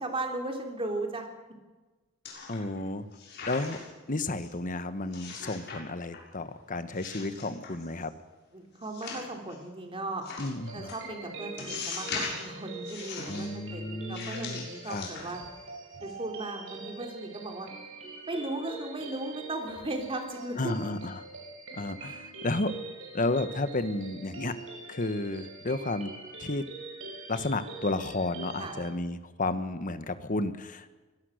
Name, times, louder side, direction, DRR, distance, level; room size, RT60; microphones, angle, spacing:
voice 1, 0.0-1.3 8.5-10.2 10.7-15.4 16.0-17.7 18.3-20.7 28.6-28.7, right 2 dB, 30° right, 3 dB, 3.4 m, -36 dB
sound 1, 2.2-2.8 3.1-4.0 4.4-4.5 5.1-5.8 6.1-6.6 6.9-8.1 8.8-9.5 10.2-10.5 10.9-11.0 11.6-12.5 12.8-13.5 14.1-15.6 15.9-16.1, left 4 dB, 55° left, 6.9 m, -40 dB
voice 2, 2.5-3.0 3.5-3.8 4.1-8.1 10.4-10.9 13.3-15.1 20.6-21.2 21.7-22.7 23.1-24.5 24.9-26.1 26.4-26.6 27.3-30.9, left 2 dB, 40° left, 11 dB, 1.3 m, -32 dB
Fairy Tale Synth Bells, 10.6-28.9, right 3 dB, 75° right, 6.0 m, -44 dB
24.0 x 18.0 x 6.5 m, 1.3 s
head